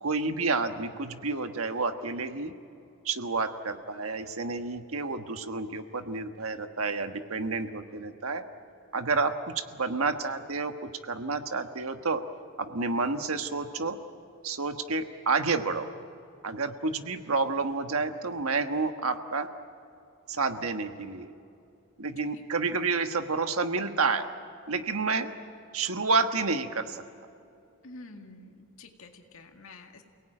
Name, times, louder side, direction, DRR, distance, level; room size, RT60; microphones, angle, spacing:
voice 1, 0.0-2.5 3.0-8.4 8.9-12.2 12.6-14.0 14.4-15.9 16.4-19.5 20.3-21.3 22.0-24.3 24.7-25.3 25.7-27.0, right 4 dB, 85° right, 7 dB, 1.4 m, -29 dB
voice 2, 27.8-30.0, left 2 dB, 75° left, 3 dB, 2.0 m, -48 dB
28.5 x 18.0 x 8.9 m, 2.6 s
head